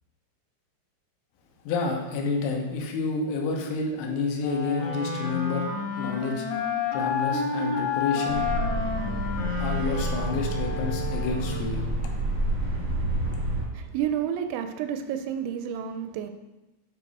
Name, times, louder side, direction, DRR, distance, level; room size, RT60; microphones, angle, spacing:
voice 1, 1.7-5.7 6.0-6.5 6.9-8.5 9.6-11.8, left 4 dB, 85° left, 2 dB, 3.5 m, -29 dB
Wind instrument woodwind instrument, 4.4-11.9, left 5 dB, 65° left, 3.1 m, -30 dB
sound 1, 8.3-13.6, right 1 dB, 50° right, 1.3 m, -29 dB
voice 2, 13.7-16.3, right 9 dB, 85° right, 7 dB, 2.8 m, -30 dB
9.2 x 4.9 x 4.1 m, 1.0 s
omnidirectional pair, 5.5 m